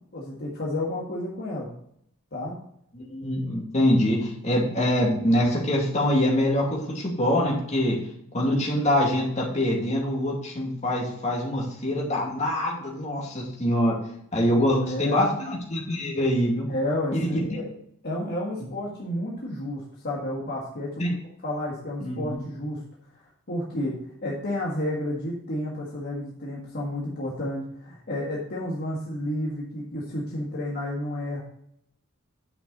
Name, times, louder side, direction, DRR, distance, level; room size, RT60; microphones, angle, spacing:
voice 1, 0.1-1.7 2.3-2.6 14.6-15.3 16.7-17.7 18.0-21.0 21.4-22.8 23.5-31.4, left 1 dB, 50° left, -4 dB, 1.6 m, -31 dB
voice 2, 2.9-8.0 8.3-14.0 14.3-16.7 17.1-17.4 21.0-21.1 22.0-22.4, left 1 dB, 30° left, -2 dB, 2.4 m, -24 dB
9.2 x 6.0 x 4.1 m, 0.70 s
head